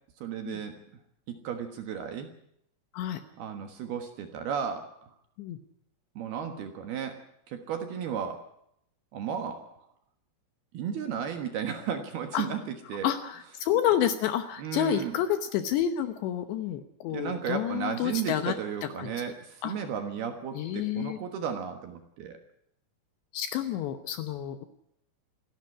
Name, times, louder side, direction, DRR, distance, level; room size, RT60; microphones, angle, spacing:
voice 1, 0.2-0.7 1.3-2.3 3.4-5.1 6.2-7.2 7.5-8.4 9.1-9.9 10.7-12.6 12.9-13.1 14.6-15.1 17.1-22.4, right 7 dB, 65° right, 6 dB, 2.8 m, -34 dB
voice 2, 13.0-18.6 18.8-19.1 19.6-19.7 20.6-21.2 23.3-24.7, left 10 dB, 75° left, 9 dB, 2.8 m, -29 dB
27.0 x 11.5 x 9.8 m, 0.74 s
omnidirectional pair, 5.9 m